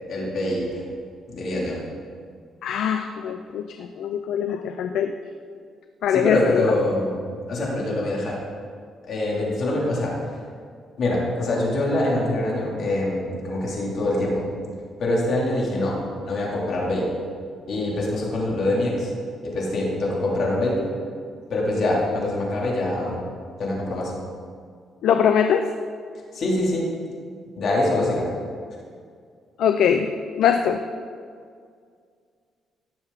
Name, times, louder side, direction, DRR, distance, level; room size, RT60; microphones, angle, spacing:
voice 1, 0.1-0.8 1.3-1.7 6.1-7.2 7.5-8.4 9.1-10.1 11.0-14.4 15.0-16.0 16.3-17.1 17.7-19.1 19.4-20.8 21.5-23.2 23.6-24.1 26.3-26.9 27.6-28.2, left 1 dB, 60° left, -4 dB, 3.4 m, -24 dB
voice 2, 2.6-5.1 6.0-6.6 25.0-25.6 29.6-30.1 30.4-30.8, left 8 dB, 75° left, 7 dB, 0.5 m, -22 dB
17.5 x 7.0 x 4.1 m, 2.1 s
cardioid pair, 90°, 0 cm